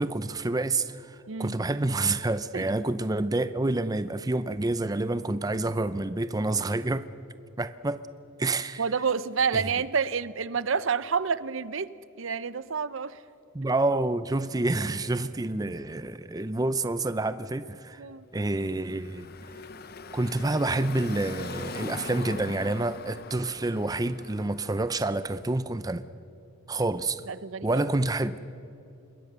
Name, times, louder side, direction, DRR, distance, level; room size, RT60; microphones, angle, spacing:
voice 1, 0.0-7.1 7.6-8.0 8.4-8.9 9.5-9.7 13.5-18.0 18.3-19.3 20.1-26.0 26.7-27.2 27.6-28.3, right 2 dB, 20° right, 0.5 m, -28 dB
voice 2, 1.3-1.6 2.5-2.6 8.8-13.2 18.0-18.3 27.3-27.8, right 6 dB, 70° right, 0.7 m, -29 dB
Car passing by / Traffic noise roadway noise, 18.5-25.4, left 4 dB, 45° left, 0.8 m, -42 dB
26.5 x 21.5 x 6.8 m
head